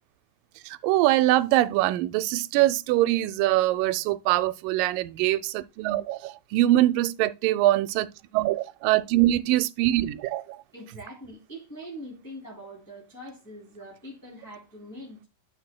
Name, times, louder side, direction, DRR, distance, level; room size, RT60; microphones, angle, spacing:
voice 1, 0.7-10.4, right 15 dB, 85° right, 2.2 m, -23 dB
voice 2, 10.7-15.3, equal, 5° left, 2.1 m, -43 dB
12.5 x 6.5 x 2.2 m
omnidirectional pair, 3.8 m